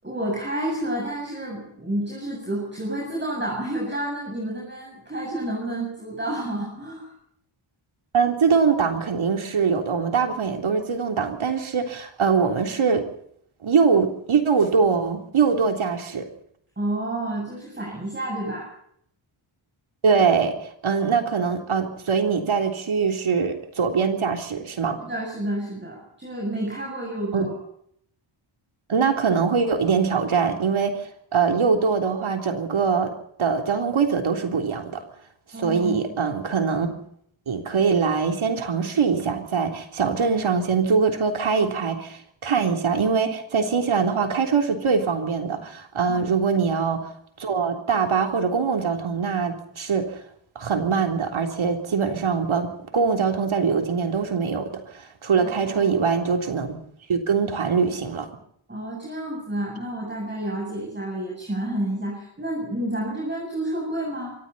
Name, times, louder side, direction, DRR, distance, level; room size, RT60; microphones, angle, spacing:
voice 1, 0.0-7.1 16.8-18.7 25.0-27.5 35.5-36.0 46.1-46.2 55.4-56.0 58.7-64.4, right 1 dB, 20° right, -3 dB, 7.8 m, -30 dB
voice 2, 8.1-13.1 13.6-16.3 20.0-25.0 27.3-27.5 28.9-31.0 31.3-33.1 33.4-35.0 35.6-36.9 37.5-47.1 47.4-50.2 50.6-56.8 57.1-58.3, right 5 dB, 75° right, 3 dB, 3.5 m, -23 dB
25.5 x 25.0 x 4.2 m, 0.69 s
wide cardioid pair, 160°, 49 cm